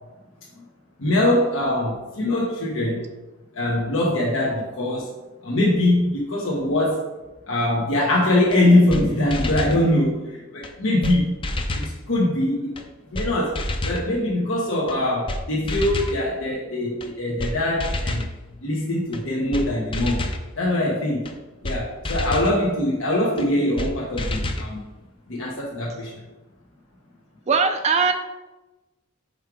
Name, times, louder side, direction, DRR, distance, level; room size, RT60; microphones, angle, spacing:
voice 1, 1.0-3.1 3.5-5.1 5.4-7.1 7.5-11.4 11.7-12.7 13.1-18.3 18.6-20.2 20.6-21.3 21.6-24.8 25.3-26.1, left 1 dB, 80° left, -4 dB, 1.2 m, -22 dB
sound 1, 8.5-8.6 8.9-9.0 9.3-9.8 10.6-10.7 11.0-11.2 11.4-11.9 12.8-12.9 13.1-13.3 13.5-14.0 14.9-15.0 15.3-15.4 15.7-16.2 17.0-17.1 17.4-17.5 17.8-18.3 19.1-19.2 19.5-19.7 19.9-20.4 21.3-21.4 21.6-21.8 22.0-22.5 23.4-23.5 23.8-23.9 24.2-24.7, left 1 dB, 25° left, 0.6 m, -28 dB
voice 2, 27.5-28.1, right 5 dB, 35° right, 6 dB, 0.4 m, -19 dB
5.5 x 4.8 x 4.8 m, 1.1 s
head